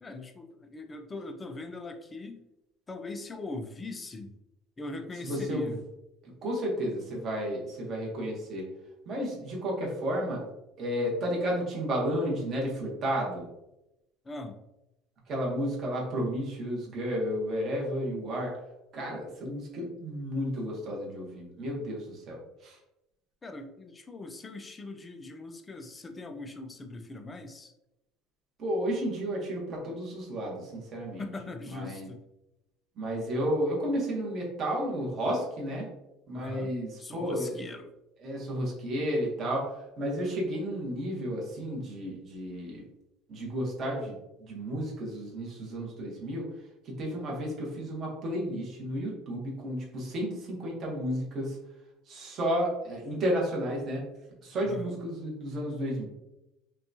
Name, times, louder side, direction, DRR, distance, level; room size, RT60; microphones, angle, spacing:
voice 1, 0.0-2.5 2.9-4.4 4.8-5.8 14.2-14.6 23.4-27.7 31.2-32.2 36.3-36.7 37.0-37.9 54.7-55.0, left 2 dB, 15° left, 6 dB, 0.3 m, -41 dB
voice 2, 5.2-5.7 6.2-8.7 9.1-10.4 10.8-13.4 15.3-18.5 18.9-22.8 28.6-31.2 31.7-32.1 33.0-35.9 36.3-37.7 38.2-42.8 43.3-44.1 44.4-46.5 46.8-51.6 52.1-54.1 54.4-56.0, equal, 30° right, -2 dB, 1.0 m, -32 dB
5.5 x 2.3 x 2.7 m, 0.91 s
cardioid pair, 180°, 0 cm